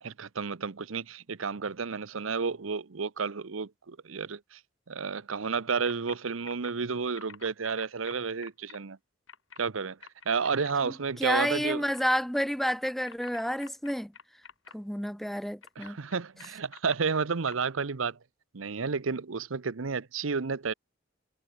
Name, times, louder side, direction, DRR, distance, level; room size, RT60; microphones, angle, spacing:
voice 1, 0.0-4.6 4.9-9.0 9.6-10.0 10.2-11.8 15.8-18.2 18.5-20.7, right 5 dB, 80° right, 0.8 m, -31 dB
sound 1, 5.9-6.2 6.4-6.7 7.2-8.8 9.3-9.6 10.0-10.7 11.7-12.0 12.7-14.7 15.6-17.0 17.5-17.6, left 6 dB, 70° left, 7.4 m, -48 dB
voice 2, 11.2-14.1 14.7-16.0, equal, ahead, 0.6 m, -30 dB
head